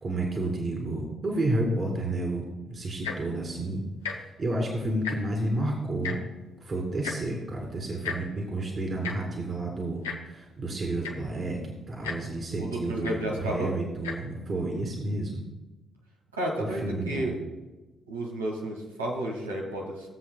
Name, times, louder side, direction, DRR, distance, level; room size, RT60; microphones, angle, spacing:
voice 1, 0.0-3.8 4.1-6.2 6.6-11.6 11.9-15.4 16.6-17.3, right 2 dB, 40° right, 0 dB, 2.3 m, -31 dB
Tick-tock, 2.9-3.3 4.0-4.2 4.5-4.6 4.9-5.4 6.0-6.2 7.0-7.2 8.0-8.2 9.0-9.1 10.0-10.2 10.7-10.8 11.0-11.3 12.0-12.2 13.0-13.2 13.9-14.1 14.9-15.0, left 6 dB, 80° left, 0.8 m, -34 dB
voice 2, 12.6-13.7 16.3-17.4 18.1-20.1, right 1 dB, 85° right, -3 dB, 1.3 m, -32 dB
18.5 x 7.7 x 2.2 m, 1.1 s
figure-of-eight pair, 40°, 0 cm